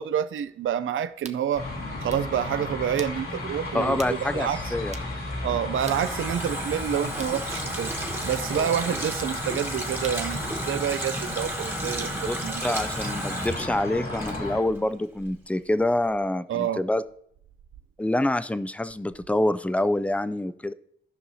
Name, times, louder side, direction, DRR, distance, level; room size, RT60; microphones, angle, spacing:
voice 1, 0.0-1.7 2.0-4.7 5.4-7.9 8.2-12.6 16.5-16.8, right 9 dB, 70° right, 0.4 m, -28 dB
sound 1, 1.2-1.4 1.9-2.3 3.0-3.2 4.0-4.2 4.5-4.6 4.9-5.1 5.9-6.1 7.2-7.4 8.2-8.4 9.2-9.4 10.0-10.3, right 4 dB, 35° right, 0.6 m, -43 dB
sound 2, 1.5-14.6, left 2 dB, 85° left, 2.5 m, -34 dB
voice 2, 3.7-4.9 8.5-8.7 12.2-12.4 12.6-17.0 18.0-20.7, left 1 dB, 5° left, 0.4 m, -26 dB
Water tap faucet, 5.3-14.9 15.2-15.3, right 1 dB, 10° right, 1.3 m, -34 dB
16.5 x 5.6 x 2.7 m
cardioid pair, 80°, 21 cm